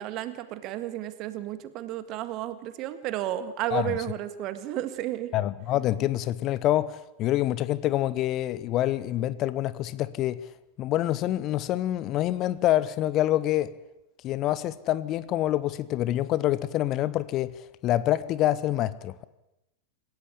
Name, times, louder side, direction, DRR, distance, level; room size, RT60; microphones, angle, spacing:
voice 1, 0.0-5.3, right 13 dB, 40° right, 1.9 m, -32 dB
voice 2, 5.3-10.4 10.8-13.7 14.2-17.6 17.8-19.3, left 14 dB, 35° left, 0.9 m, -26 dB
27.5 x 16.0 x 8.4 m
figure-of-eight pair, 90°, 0 cm